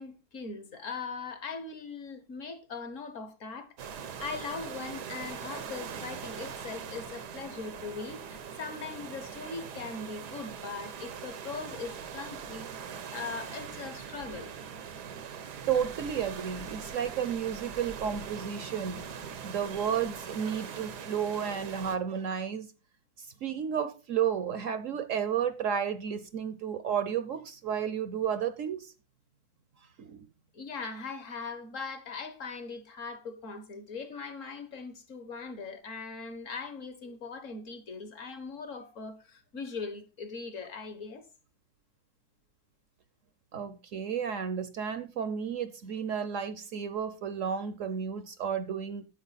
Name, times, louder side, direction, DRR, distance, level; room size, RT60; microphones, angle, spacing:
voice 1, 0.0-12.7 13.1-14.5 30.5-41.2, left 4 dB, 55° left, 1.5 m, -40 dB
sound 1, 3.8-22.0, right 7 dB, 85° right, 1.6 m, -42 dB
voice 2, 15.7-19.0 19.4-22.7 23.2-28.9 30.0-30.2 43.5-49.1, right 8 dB, 60° right, 0.9 m, -32 dB
9.5 x 7.8 x 4.1 m
omnidirectional pair, 1.7 m